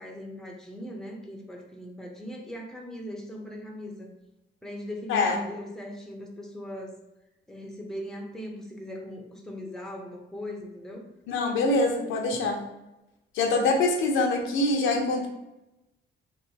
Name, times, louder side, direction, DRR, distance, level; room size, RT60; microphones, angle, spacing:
voice 1, 0.0-4.2 4.6-7.0 7.5-11.1 12.3-12.4, left 1 dB, 5° left, 1 dB, 0.6 m, -39 dB
voice 2, 5.1-5.5 11.3-12.6 13.3-15.3, left 2 dB, 85° left, 2 dB, 0.6 m, -24 dB
3.1 x 3.0 x 2.7 m, 0.95 s
cardioid pair, 90°, 20 cm